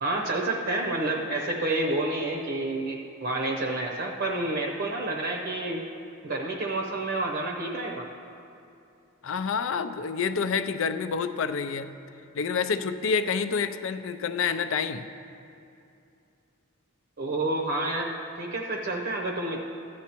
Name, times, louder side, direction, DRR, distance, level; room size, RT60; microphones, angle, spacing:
voice 1, 0.0-5.8 6.2-8.1 17.2-19.6, right 2 dB, 55° right, 0 dB, 0.8 m, -29 dB
voice 2, 9.2-11.9 12.3-15.1, left 5 dB, 65° left, 10 dB, 0.4 m, -28 dB
14.5 x 9.3 x 3.0 m, 2.6 s
head